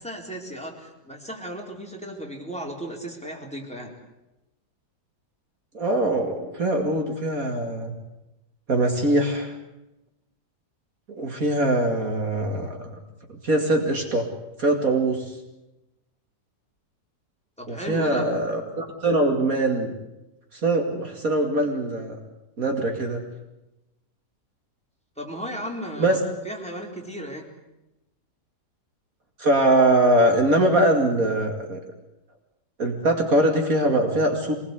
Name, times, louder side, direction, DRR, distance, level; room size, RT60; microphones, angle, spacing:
voice 1, 0.0-4.0 17.6-18.3 25.2-26.2 26.4-27.5, equal, 5° left, 0 dB, 4.1 m, -35 dB
voice 2, 5.7-7.9 8.7-9.5 11.2-13.0 13.3-14.3 14.6-15.3 17.7-19.9 20.5-22.2 22.6-23.2 26.0-26.2 29.4-31.8 32.8-34.5, right 1 dB, 55° right, 3 dB, 2.8 m, -22 dB
25.5 x 20.0 x 8.3 m, 0.95 s
omnidirectional pair, 1.7 m